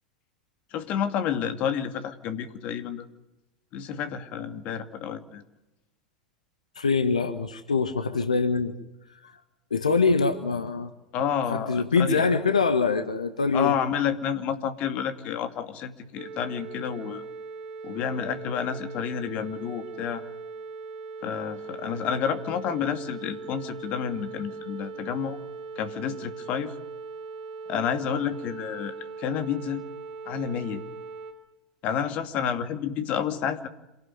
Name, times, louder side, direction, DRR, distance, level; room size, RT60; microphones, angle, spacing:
voice 1, 0.7-3.1 3.7-5.4 11.1-12.3 13.5-17.2 17.8-20.2 21.2-25.4 25.8-26.7 27.7-29.8 30.3-30.8 31.8-33.7, left 8 dB, 40° left, 8 dB, 2.5 m, -30 dB
voice 2, 6.7-8.7 9.2-9.4 9.7-10.9 11.5-13.8, left 4 dB, 75° left, 10 dB, 1.5 m, -24 dB
sound 1, 16.2-31.3, right 4 dB, 40° right, 4.1 m, -40 dB
27.5 x 18.0 x 9.4 m, 0.95 s
figure-of-eight pair, 85°, 4 cm